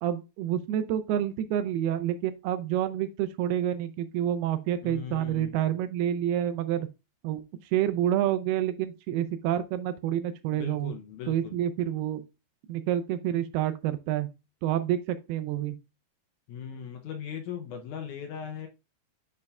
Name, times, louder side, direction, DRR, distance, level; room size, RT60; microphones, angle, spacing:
voice 1, 0.0-6.9 7.2-7.4 7.7-10.9 11.3-12.2 12.7-14.3 14.6-15.8, right 11 dB, 85° right, 2.6 m, -28 dB
voice 2, 4.8-5.7 10.5-11.6 16.5-18.7, left 8 dB, 80° left, 1.7 m, -39 dB
9.7 x 5.3 x 2.3 m
omnidirectional pair, 4.5 m